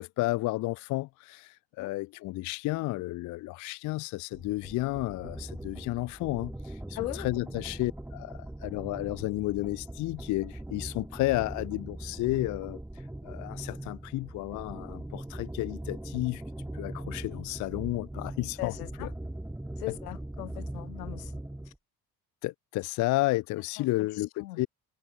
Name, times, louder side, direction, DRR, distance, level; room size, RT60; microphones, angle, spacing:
voice 1, 0.0-6.8 7.2-12.8 13.2-16.4 16.7-18.7 22.4-24.7, left 19 dB, 45° left, 0.5 m, -32 dB
sound 1, 4.3-21.8, right 1 dB, 5° right, 1.0 m, -41 dB
voice 2, 6.9-7.3 18.6-19.1 19.8-21.3 21.6-21.7 23.5-24.6, left 17 dB, 80° left, 0.9 m, -39 dB
hypercardioid pair, 55°, 45 cm